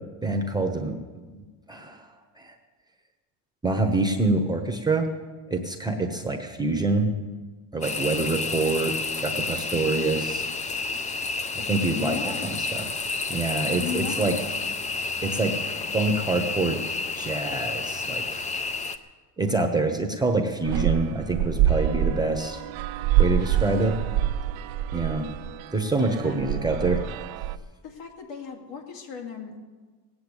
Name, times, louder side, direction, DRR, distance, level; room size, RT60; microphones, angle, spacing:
voice 1, 0.2-1.0 1.3-2.1 2.4-2.5 3.6-5.1 5.5-7.1 7.7-10.5 11.5-12.3 12.7-12.9 13.3-14.3 15.2-16.8 17.1-18.4 19.4-22.6 23.2-24.0 24.9-25.3 25.7-27.0, right 3 dB, 10° right, 3 dB, 0.9 m, -26 dB
sound 1, 7.8-19.0, left 4 dB, 15° left, 0.5 m, -30 dB
voice 2, 11.9-12.6 13.8-14.4 26.2-26.5 27.8-29.6, left 7 dB, 65° left, 1 dB, 3.0 m, -36 dB
sound 2, 20.7-27.6, right 10 dB, 85° right, 0.8 m, -26 dB
18.5 x 8.8 x 8.1 m, 1.4 s
cardioid pair, 150°, 47 cm